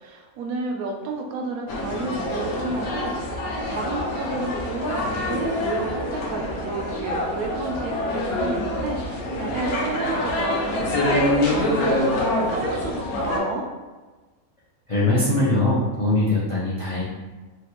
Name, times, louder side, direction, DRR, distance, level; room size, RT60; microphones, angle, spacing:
voice 1, 0.0-13.7, right 3 dB, 85° right, 1 dB, 1.0 m, -31 dB
sound 1, 1.7-13.4, left 1 dB, 85° left, 1.1 m, -25 dB
voice 2, 14.9-17.0, left 2 dB, 45° left, -8 dB, 0.4 m, -21 dB
3.3 x 2.3 x 2.9 m, 1.3 s
omnidirectional pair, 1.5 m